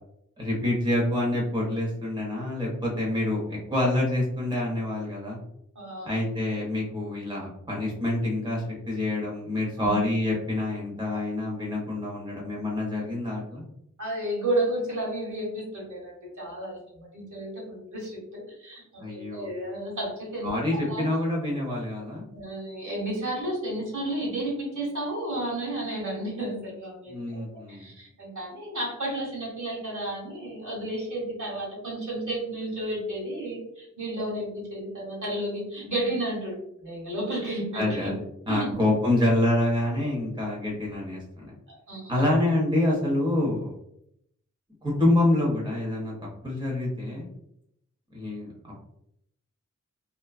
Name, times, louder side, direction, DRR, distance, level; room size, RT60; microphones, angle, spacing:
voice 1, 0.4-5.4 6.0-13.6 19.0-19.5 20.4-22.2 27.1-27.9 37.7-38.2 38.5-41.5 42.1-43.7 44.8-46.1 46.4-47.3 48.1-48.8, left 1 dB, 15° right, -3 dB, 0.8 m, -27 dB
voice 2, 5.7-6.1 9.8-9.9 14.0-18.8 19.1-21.0 22.3-38.1 38.5-38.7 41.7-42.3, right 1 dB, 70° right, -5 dB, 1.3 m, -32 dB
2.5 x 2.2 x 2.3 m, 0.77 s
cardioid pair, 50°, 31 cm